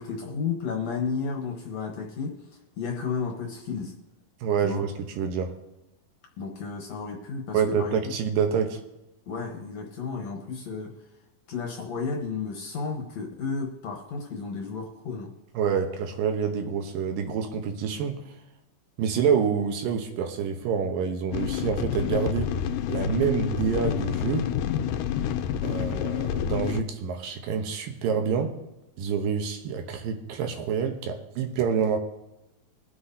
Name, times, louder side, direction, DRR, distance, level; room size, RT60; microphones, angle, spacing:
voice 1, 0.0-2.4 2.8-3.9 4.6-4.8 6.4-8.0 9.3-11.0 11.5-15.3, left 5 dB, 60° left, 1 dB, 2.1 m, -32 dB
voice 2, 4.4-5.5 7.5-8.8 15.5-18.2 19.0-22.5 22.9-24.5 25.6-28.6 29.0-32.0, right 7 dB, 80° right, 5 dB, 2.6 m, -27 dB
sound 1, 21.3-26.8, left 10 dB, 80° left, 2.1 m, -28 dB
23.0 x 7.8 x 2.8 m, 0.94 s
omnidirectional pair, 4.1 m